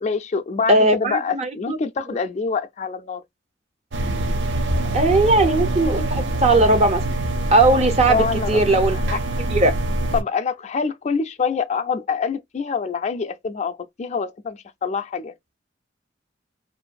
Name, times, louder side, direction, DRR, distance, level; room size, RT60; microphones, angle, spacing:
voice 1, 0.0-3.2 8.1-8.6 8.9-9.2 10.1-15.3, left 5 dB, 40° left, 0.3 m, -25 dB
voice 2, 0.7-1.8 4.9-7.0 7.5-9.0 9.5-9.7, right 2 dB, 35° right, 0.5 m, -18 dB
sound 1, 3.9-10.2, right 1 dB, 80° right, 0.5 m, -24 dB
2.6 x 2.5 x 2.2 m
head